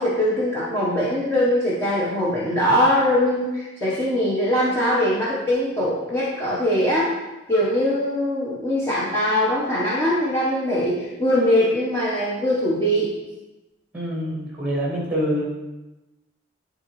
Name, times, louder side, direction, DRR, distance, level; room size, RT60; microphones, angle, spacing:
voice 1, 0.0-7.1 7.5-13.1, equal, 15° left, -8 dB, 1.0 m, -21 dB
voice 2, 13.9-15.5, equal, 10° right, -5 dB, 1.8 m, -25 dB
10.5 x 3.9 x 3.1 m, 1.1 s
head